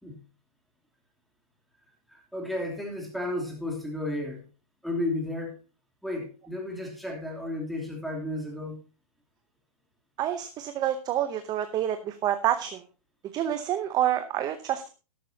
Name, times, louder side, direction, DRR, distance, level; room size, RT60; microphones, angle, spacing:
voice 1, 2.1-4.4 4.8-5.6 6.0-8.8, left 1 dB, ahead, 1 dB, 2.8 m, -33 dB
voice 2, 10.2-12.8 13.3-14.9, right 11 dB, 20° right, 9 dB, 0.7 m, -28 dB
12.5 x 11.5 x 2.8 m, 0.31 s
hypercardioid pair, 145°, 20 cm